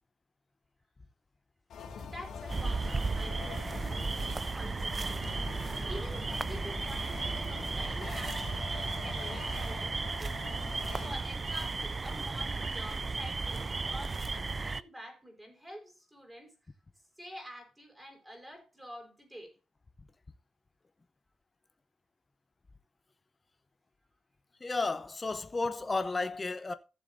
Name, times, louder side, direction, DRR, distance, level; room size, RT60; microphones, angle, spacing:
sound 1, 1.7-11.1, left 5 dB, 85° left, 2.5 m, -44 dB
voice 1, 2.0-5.3 5.8-10.6 11.0-16.6 17.2-19.5, equal, 10° right, 4.6 m, -48 dB
sound 2, 2.5-14.8, right 3 dB, 30° right, 0.4 m, -34 dB
voice 2, 24.6-26.7, left 3 dB, 25° left, 0.8 m, -32 dB
15.5 x 7.1 x 2.7 m
cardioid pair, 100°, 0 cm